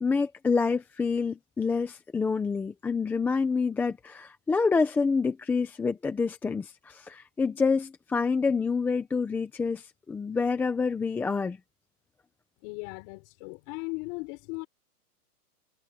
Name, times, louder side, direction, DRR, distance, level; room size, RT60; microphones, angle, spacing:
voice 1, 0.0-11.6, left 4 dB, 5° left, 0.6 m, -27 dB
voice 2, 12.6-14.7, left 29 dB, 35° left, 4.2 m, -37 dB
hypercardioid pair, 155°, 46 cm